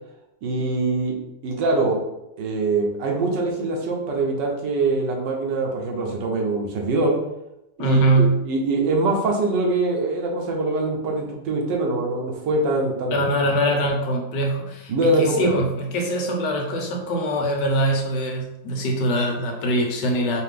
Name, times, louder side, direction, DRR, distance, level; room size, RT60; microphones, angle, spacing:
voice 1, 0.4-1.2 1.4-2.0 2.4-7.2 7.8-13.2 14.9-15.6, right 2 dB, 75° right, 0 dB, 1.5 m, -23 dB
voice 2, 7.8-8.4 13.1-20.4, right 1 dB, 75° left, 1 dB, 1.4 m, -22 dB
4.7 x 2.4 x 3.6 m, 0.87 s
omnidirectional pair, 1.9 m